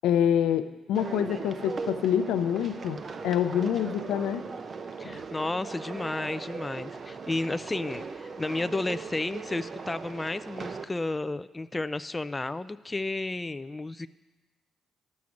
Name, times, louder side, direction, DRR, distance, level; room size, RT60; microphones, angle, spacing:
voice 1, 0.0-4.4 5.0-5.2, left 9 dB, 90° left, 10 dB, 0.5 m, -26 dB
sound 1, 0.9-10.8, right 5 dB, 45° right, 0.6 m, -39 dB
voice 2, 5.0-14.1, left 2 dB, 15° left, 13 dB, 0.3 m, -32 dB
10.5 x 6.4 x 7.0 m, 1.1 s
cardioid pair, 90°, 0 cm